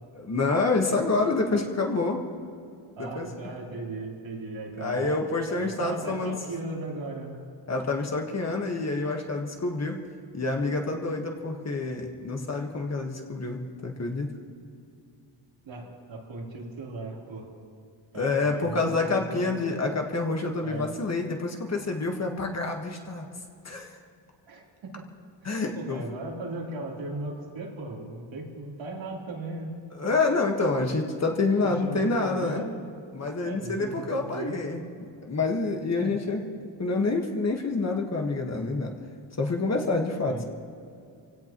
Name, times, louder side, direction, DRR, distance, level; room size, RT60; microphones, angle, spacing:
voice 1, 0.1-2.2 3.0-3.3 4.8-6.4 7.7-10.0 10.3-14.3 18.1-23.3 23.6-24.0 25.4-26.0 29.9-32.6 33.1-36.4 36.8-38.9 39.4-40.4, left 3 dB, 35° left, 2 dB, 1.5 m, -27 dB
voice 2, 3.0-5.2 5.5-7.4 15.6-17.5 18.1-19.6 20.6-20.9 24.5-25.1 25.4-29.8 31.6-32.8 33.4-34.6 36.0-36.1 40.3-40.4, right 2 dB, 75° right, -3 dB, 3.6 m, -37 dB
27.0 x 17.0 x 3.0 m, 2.5 s
wide cardioid pair, 170°, 47 cm